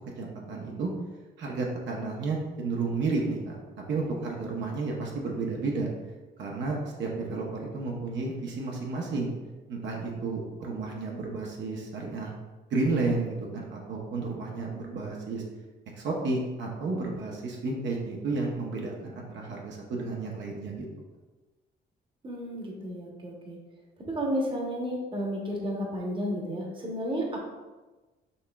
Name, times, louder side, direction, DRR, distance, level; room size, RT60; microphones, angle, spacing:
voice 1, 0.2-0.9 1.4-3.6 3.9-5.9 6.4-9.3 9.7-12.3 12.7-15.4 16.0-20.9, right 3 dB, 65° right, -1 dB, 0.8 m, -32 dB
voice 2, 22.2-23.6 24.1-27.4, equal, 25° right, -1 dB, 1.0 m, -32 dB
5.4 x 2.9 x 2.3 m, 1.2 s
cardioid pair, 90°, 20 cm